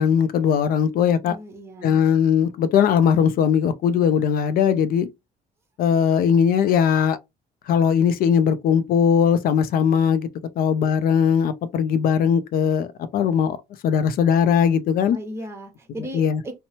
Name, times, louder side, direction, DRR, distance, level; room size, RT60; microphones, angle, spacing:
voice 1, 0.0-1.4 1.8-5.1 5.8-7.2 7.7-10.3 10.6-12.9 13.1-13.6 13.8-15.2 16.1-16.4, left 7 dB, 60° left, 0.4 m, -19 dB
voice 2, 1.2-2.1 15.1-16.5, equal, 15° right, 1.0 m, -36 dB
2.7 x 2.1 x 2.8 m
cardioid pair, 110°, 17 cm